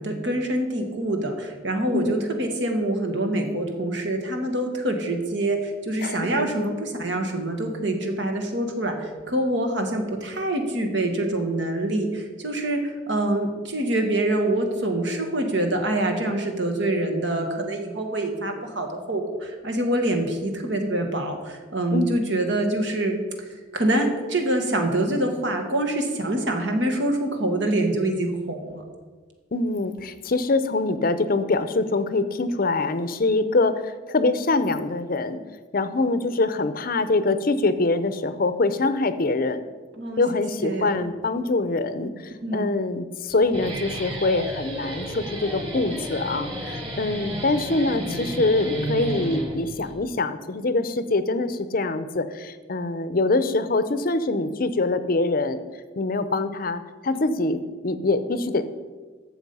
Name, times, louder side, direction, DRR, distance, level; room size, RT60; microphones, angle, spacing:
voice 1, 0.0-23.2 23.7-28.8 40.0-40.2 40.6-41.0 42.4-42.7, right 1 dB, 65° right, 4 dB, 1.7 m, -25 dB
voice 2, 6.0-6.7 21.9-22.2 29.5-35.4 35.7-39.6 40.2-55.6 56.0-58.6, left 3 dB, 50° left, 12 dB, 0.6 m, -24 dB
Guitar, 43.3-49.9, right 1 dB, 30° right, 2.6 m, -32 dB
12.0 x 7.3 x 5.4 m, 1.4 s
head